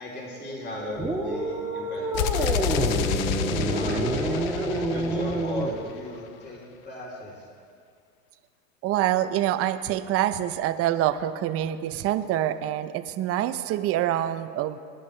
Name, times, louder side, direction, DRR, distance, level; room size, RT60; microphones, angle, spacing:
voice 1, 0.0-4.4 4.9-7.3, left 1 dB, 25° left, -4 dB, 3.4 m, -37 dB
sound 1, 1.0-5.8, right 2 dB, 5° right, 1.2 m, -27 dB
sound 2, 2.1-6.0, left 10 dB, 80° left, 0.7 m, -29 dB
voice 2, 4.5-4.9 8.8-14.8, right 12 dB, 35° right, 10 dB, 0.6 m, -26 dB
22.0 x 10.5 x 3.3 m, 2.3 s
supercardioid pair, 120°, 40 cm